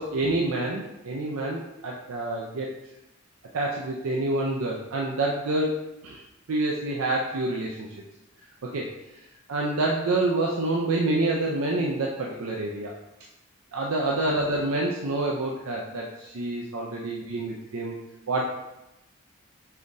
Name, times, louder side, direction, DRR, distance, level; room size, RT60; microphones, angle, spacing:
voice 1, 0.0-2.7 3.5-6.2 6.5-7.9 8.6-8.9 9.5-12.9 13.7-18.0 18.3-18.5, right 2 dB, 90° right, -2 dB, 0.5 m, -27 dB
5.6 x 3.6 x 2.6 m, 0.95 s
head